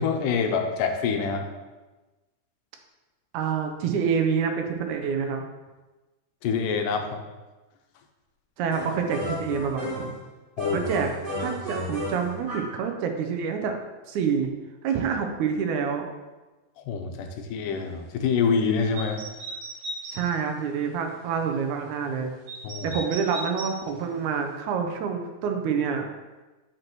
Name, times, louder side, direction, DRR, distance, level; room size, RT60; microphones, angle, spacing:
voice 1, 0.0-1.5 6.4-7.2 10.6-10.9 16.9-19.2 22.6-23.0, left 5 dB, 85° left, 5 dB, 2.2 m, -26 dB
voice 2, 3.3-5.4 8.6-10.1 10.7-11.1 11.4-13.8 14.1-14.5 14.8-16.1 20.1-22.3 22.8-26.1, right 6 dB, 80° right, 4 dB, 2.0 m, -27 dB
sound 1, 8.7-10.2 10.6-12.8, left 1 dB, 30° right, 1.0 m, -33 dB
sound 2, 19.0-20.2 22.5-23.8, right 2 dB, 60° right, 1.5 m, -36 dB
7.8 x 6.0 x 3.0 m, 1.2 s
omnidirectional pair, 3.8 m